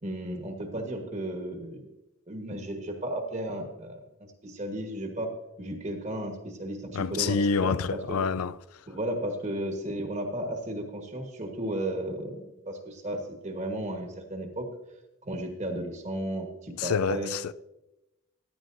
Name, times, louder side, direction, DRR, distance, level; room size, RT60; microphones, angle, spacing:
voice 1, 0.0-1.8 2.3-5.3 5.6-8.2 8.9-14.7 15.2-17.3, right 1 dB, 35° right, 1.3 m, -34 dB
voice 2, 6.9-8.6 16.8-17.5, left 5 dB, 85° left, 0.4 m, -27 dB
15.0 x 11.0 x 2.6 m
head